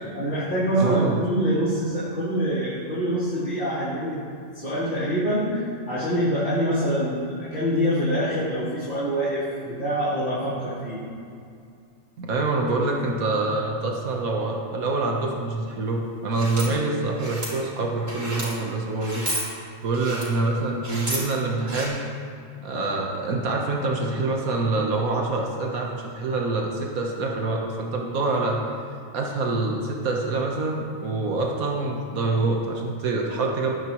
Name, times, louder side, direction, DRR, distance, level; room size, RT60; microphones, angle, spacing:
voice 1, 0.0-4.2 4.5-11.0 16.4-16.8, right 1 dB, 45° left, -14 dB, 3.9 m, -25 dB
voice 2, 0.8-1.2 12.2-19.3 19.8-22.0 22.6-28.6 29.1-33.7, right 3 dB, 90° right, 0 dB, 1.6 m, -26 dB
sound 1, 16.3-16.7 17.2-17.5 18.1-18.5 19.0-19.5 19.9-20.2 20.8-21.2 21.7-21.9, right 1 dB, 45° right, 3.2 m, -31 dB
20.0 x 9.5 x 3.1 m, 2.4 s
omnidirectional pair, 1.4 m